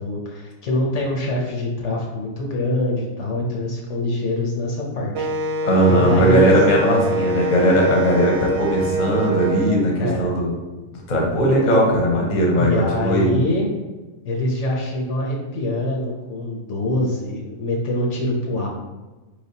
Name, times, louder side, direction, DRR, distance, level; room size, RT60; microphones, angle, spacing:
voice 1, 0.0-5.6 5.9-6.6 10.0-10.3 12.6-13.7 14.2-18.7, left 1 dB, 65° left, -2 dB, 1.0 m, -24 dB
Wind instrument woodwind instrument, 5.1-9.8, equal, 70° right, 0.8 m, -24 dB
voice 2, 5.6-10.5 10.9-13.3, equal, 40° left, -1 dB, 0.9 m, -18 dB
4.5 x 3.3 x 2.7 m, 1.2 s
omnidirectional pair, 1.4 m